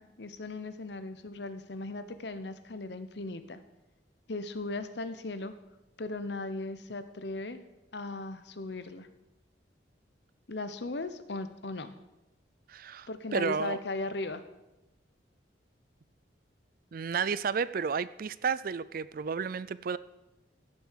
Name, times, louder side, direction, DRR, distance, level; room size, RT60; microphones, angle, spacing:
voice 1, 0.0-3.6 4.3-5.5 6.0-7.6 7.9-9.1 10.5-11.9 13.1-14.4, left 2 dB, 65° left, 11 dB, 1.0 m, -37 dB
voice 2, 12.7-13.8 16.9-20.0, right 6 dB, 50° right, 17 dB, 0.4 m, -32 dB
15.5 x 6.8 x 6.6 m, 0.96 s
head